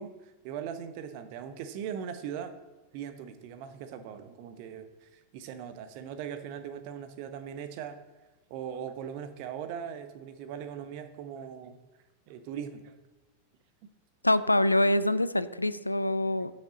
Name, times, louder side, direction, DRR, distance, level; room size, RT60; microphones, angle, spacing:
voice 1, 0.0-2.5 2.9-8.0 8.5-11.8 12.3-12.9, right 8 dB, 45° right, 9 dB, 0.8 m, -40 dB
voice 2, 14.2-16.5, left 1 dB, 85° left, 15 dB, 0.3 m, -25 dB
8.7 x 6.5 x 4.0 m, 1.1 s
figure-of-eight pair, 90°, 0 cm